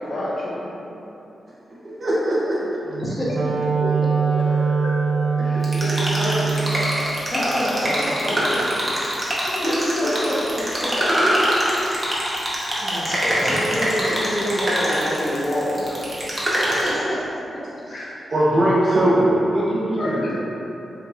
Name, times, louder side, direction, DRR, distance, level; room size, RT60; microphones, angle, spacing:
voice 1, 0.1-0.7 3.8-4.0 4.5-5.1 5.4-6.6 7.3-8.8 9.5-9.6 10.0-10.3 13.2-16.1 17.9-18.1 20.0-20.3, left 1 dB, 55° left, -6 dB, 0.5 m, -27 dB
voice 2, 1.8-2.6 12.8-13.1 18.3-20.3, right 1 dB, 60° right, -8 dB, 0.7 m, -20 dB
Wind instrument woodwind instrument, 2.9-7.0, right 5 dB, 90° right, 0.3 m, -22 dB
voice 3, 3.0-3.3 7.3-7.4 9.6-10.4 10.8-10.9 12.3-12.5 12.9-13.6 16.6-17.3, equal, 35° left, -8 dB, 1.0 m, -28 dB
sound 1, 5.6-16.9, equal, 15° right, 0.8 m, -24 dB
3.6 x 2.9 x 2.4 m, 3.0 s
cardioid pair, 90°, 0 cm